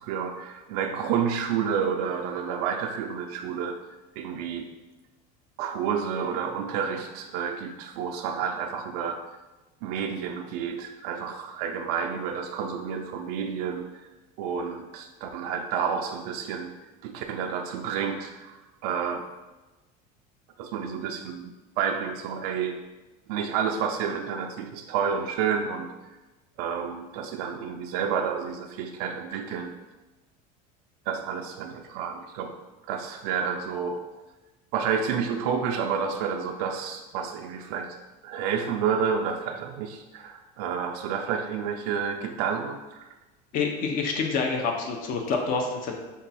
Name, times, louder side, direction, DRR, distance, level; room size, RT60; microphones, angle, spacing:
voice 1, 0.0-3.8 4.2-4.7 5.6-9.2 9.8-13.9 14.4-16.7 17.0-18.5 18.8-19.3 20.6-22.8 23.3-25.9 26.6-29.7 31.1-32.5 32.9-34.0 34.7-38.0 38.2-43.1, right 7 dB, 75° right, 3 dB, 0.4 m, -30 dB
voice 2, 43.5-46.0, left 4 dB, 45° left, 2 dB, 0.6 m, -27 dB
5.3 x 2.3 x 4.0 m, 1.1 s
supercardioid pair, 130°, 20 cm